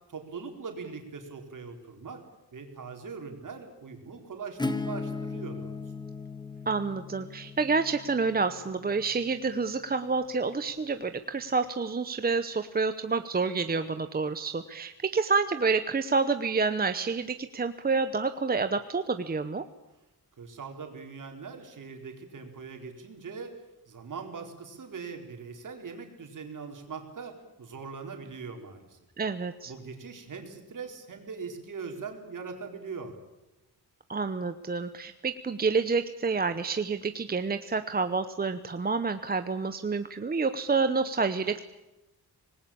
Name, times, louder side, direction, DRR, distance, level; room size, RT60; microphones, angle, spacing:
voice 1, 0.1-2.2 2.5-5.7 20.4-23.5 23.9-29.0 29.7-33.2, right 5 dB, 55° right, 4 dB, 4.2 m, -41 dB
Acoustic guitar / Strum, 4.6-10.1, left 3 dB, 10° left, 1.3 m, -37 dB
voice 2, 6.7-19.6 29.2-29.7 34.1-41.6, right 4 dB, 25° right, 9 dB, 0.8 m, -28 dB
25.5 x 19.5 x 8.7 m, 1.0 s
wide cardioid pair, 170°, 38 cm